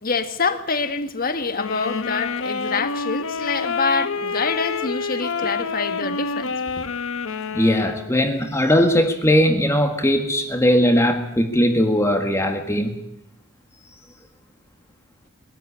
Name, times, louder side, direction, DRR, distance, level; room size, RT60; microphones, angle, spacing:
voice 1, 0.0-6.9, left 4 dB, 45° left, 1.6 m, -26 dB
sound 1, 1.5-8.1, left 5 dB, 75° left, 1.1 m, -28 dB
voice 2, 7.5-13.0, equal, 15° left, 1.7 m, -19 dB
21.5 x 13.5 x 9.9 m
head